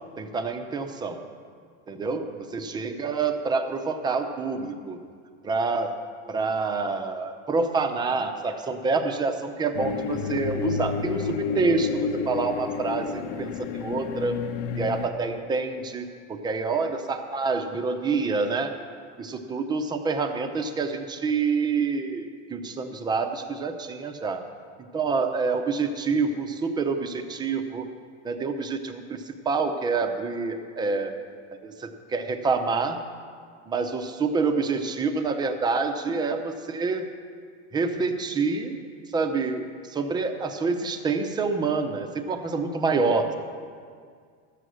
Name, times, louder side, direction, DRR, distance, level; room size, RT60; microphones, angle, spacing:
voice 1, 0.2-1.2 1.9-5.0 5.4-5.9 6.3-14.4 14.8-18.7 19.2-24.4 24.9-27.9 28.2-31.1 31.6-33.0 33.7-37.1 37.7-38.8 39.1-43.3, right 4 dB, 10° right, 6 dB, 0.5 m, -27 dB
sound 1, 9.7-15.1, left 5 dB, 65° left, 0.9 m, -30 dB
13.0 x 7.9 x 6.3 m, 2.1 s
supercardioid pair, 155°, 39 cm